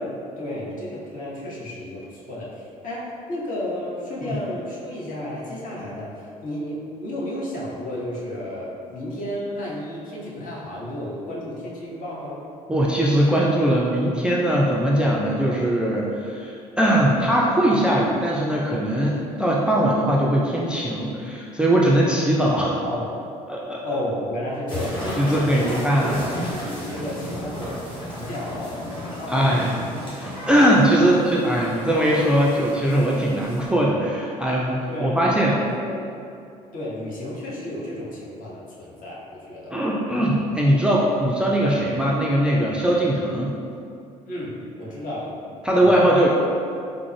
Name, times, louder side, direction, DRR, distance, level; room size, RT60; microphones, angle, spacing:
voice 1, 0.0-12.4 22.8-23.2 23.8-27.9 28.1-29.7 34.9-36.0 36.7-39.8 44.3-46.1, left 1 dB, 50° left, -5 dB, 0.9 m, -32 dB
voice 2, 12.7-22.8 23.5-23.8 25.2-26.2 29.3-29.8 30.2-35.6 39.7-43.5 45.6-46.3, right 1 dB, 5° right, -4 dB, 0.4 m, -20 dB
sound 1, 24.7-33.7, equal, 25° left, 1.3 m, -34 dB
3.5 x 2.0 x 3.2 m, 2.5 s
figure-of-eight pair, 55°, 18 cm